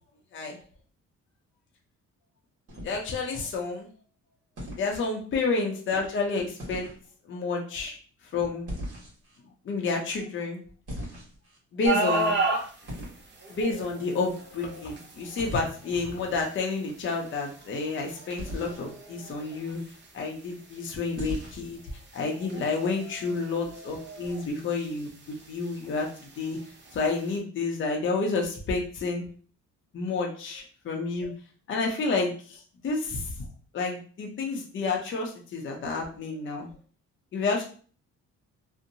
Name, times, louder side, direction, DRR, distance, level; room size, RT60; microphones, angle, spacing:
sound 1, 2.7-3.4 4.6-4.9 6.6-7.0 8.7-9.4 10.9-11.6 12.9-13.2 15.4-15.7 18.4-18.9 21.2-21.7, equal, 50° right, 1.4 m, -38 dB
voice 1, 2.8-3.9 4.8-6.9 7.2-8.0 8.3-8.7 9.6-10.6 11.7-12.3 13.5-19.8 20.1-21.8 22.1-26.6 26.9-29.2 29.9-31.3 31.7-33.3 33.7-36.7 37.3-37.6, left 4 dB, 40° left, 0 dB, 0.6 m, -30 dB
sound 2, 11.8-27.4, right 3 dB, 35° right, 0.8 m, -36 dB
2.7 x 2.1 x 2.6 m, 0.42 s
cardioid pair, 90°, 30 cm